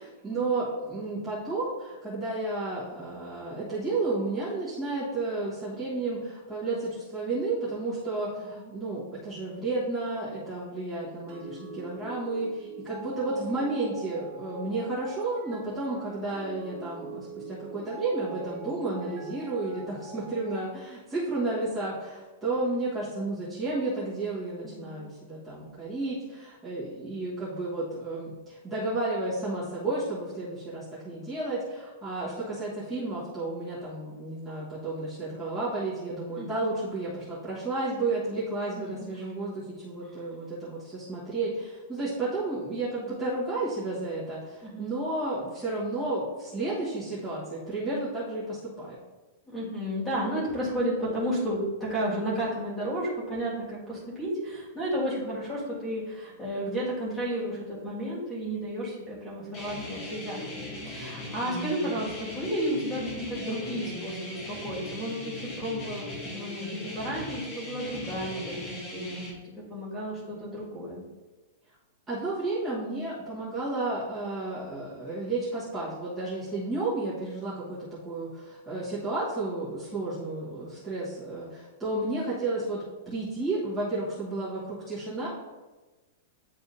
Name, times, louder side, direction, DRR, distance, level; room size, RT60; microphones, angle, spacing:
voice 1, 0.0-48.9 72.1-85.3, right 2 dB, 10° right, -12 dB, 1.5 m, -32 dB
voice 2, 8.4-8.8 24.8-25.1 36.4-36.7 38.8-39.1 40.1-40.2 44.6-45.0 49.5-71.0, right 1 dB, 5° left, -7 dB, 1.9 m, -33 dB
sound 1, 11.3-20.7, right 4 dB, 35° right, 1.9 m, -43 dB
sound 2, 59.5-69.3, left 1 dB, 25° left, 1.1 m, -38 dB
10.0 x 3.5 x 2.7 m, 1.2 s
supercardioid pair, 170°, 0 cm